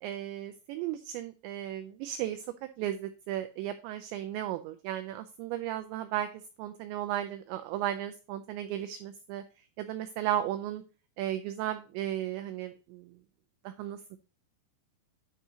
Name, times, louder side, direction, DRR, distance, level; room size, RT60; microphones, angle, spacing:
voice 1, 0.0-2.5 2.8-6.3 6.6-9.4 9.8-10.8 11.2-13.1 13.7-14.2, right 12 dB, 85° right, 9 dB, 2.6 m, -35 dB
12.0 x 4.9 x 2.8 m, 0.35 s
omnidirectional pair, 5.7 m